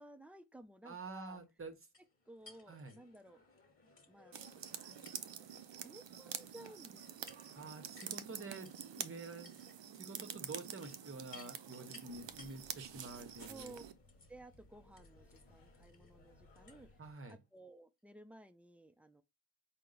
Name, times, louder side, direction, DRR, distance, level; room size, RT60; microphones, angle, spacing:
voice 1, 0.0-1.4 2.3-3.4 4.1-4.4 4.8-5.4 5.8-7.7 13.5-13.8 14.3-16.9 17.3-19.2, right 2 dB, 5° right, 0.3 m, -56 dB
voice 2, 0.8-1.8 2.7-2.9 7.6-9.5 9.9-13.8 17.0-17.4, right 3 dB, 30° right, 0.9 m, -48 dB
sound 1, 1.9-17.4, left 4 dB, 25° left, 1.2 m, -62 dB
sound 2, 4.3-13.9, right 9 dB, 70° right, 0.6 m, -47 dB
sound 3, 12.1-17.1, left 2 dB, 45° left, 0.9 m, -63 dB
4.4 x 2.1 x 3.8 m
wide cardioid pair, 110°, 47 cm